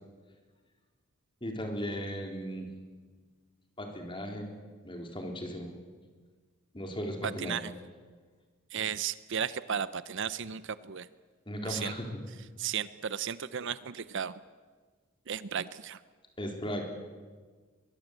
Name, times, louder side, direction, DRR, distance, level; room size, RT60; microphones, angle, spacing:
voice 1, 1.4-2.7 3.8-4.6 4.8-5.8 6.7-7.6 11.5-12.2 16.4-16.9, equal, 25° left, 3 dB, 3.8 m, -36 dB
voice 2, 7.2-7.7 8.7-11.1 11.6-11.9 12.6-14.3 15.3-16.0, right 7 dB, 60° right, 15 dB, 0.7 m, -34 dB
23.0 x 22.5 x 8.2 m, 1.5 s
head